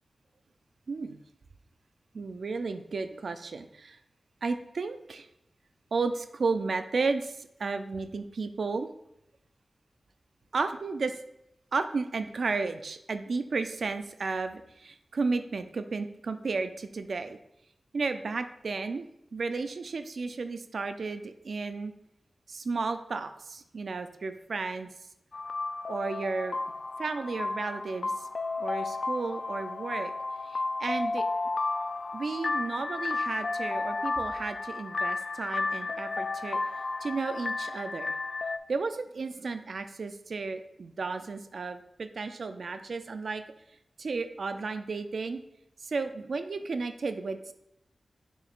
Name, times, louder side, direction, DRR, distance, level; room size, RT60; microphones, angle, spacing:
voice 1, 0.9-1.2 2.1-4.0 4.4-5.3 5.9-8.9 10.5-11.2 11.7-17.4 17.9-21.9 22.5-24.9 25.9-26.6 27.0-28.3 28.6-30.1 30.4-31.2 32.1-38.1 38.7-43.4 44.0-45.4 45.8-47.5, right 4 dB, 70° right, 9 dB, 0.4 m, -33 dB
sound 1, 25.3-38.6, left 3 dB, 55° left, 0.4 m, -33 dB
6.8 x 6.2 x 2.5 m, 0.81 s
wide cardioid pair, 75°, 0 cm